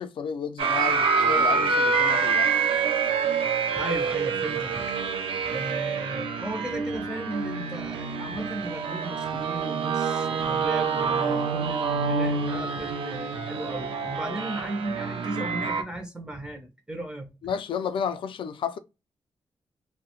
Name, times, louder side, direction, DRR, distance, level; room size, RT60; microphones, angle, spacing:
voice 1, 0.0-2.5 14.2-14.4 17.4-18.8, left 7 dB, 70° left, 0.4 m, -32 dB
sound 1, 0.6-15.8, right 5 dB, 75° right, 0.4 m, -26 dB
voice 2, 3.7-5.0 5.4-17.3, right 1 dB, 10° right, 0.4 m, -36 dB
2.7 x 2.1 x 2.8 m
wide cardioid pair, 165°, 9 cm